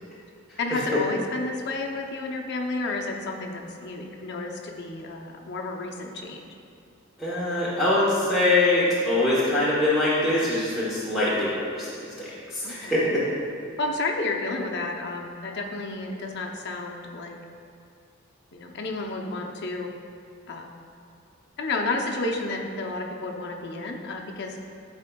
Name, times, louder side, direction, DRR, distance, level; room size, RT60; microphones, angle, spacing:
voice 1, 0.6-6.5 12.6-13.1 13.8-17.4 18.5-19.9 20.5-20.7 21.6-24.6, left 2 dB, 55° left, 1 dB, 0.7 m, -31 dB
voice 2, 7.2-11.9 12.2-12.3 12.5-13.2, left 2 dB, ahead, -10 dB, 1.0 m, -23 dB
12.0 x 4.3 x 2.3 m, 2.3 s
head